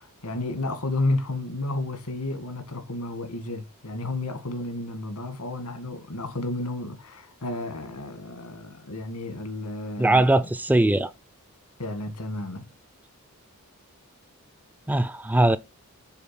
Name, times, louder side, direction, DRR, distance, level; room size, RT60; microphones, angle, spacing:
voice 1, 0.0-10.3 11.8-12.7, left 2 dB, 90° left, 1.9 m, -32 dB
voice 2, 10.0-11.1 14.9-15.6, right 1 dB, 5° right, 0.4 m, -20 dB
7.1 x 3.9 x 5.9 m
head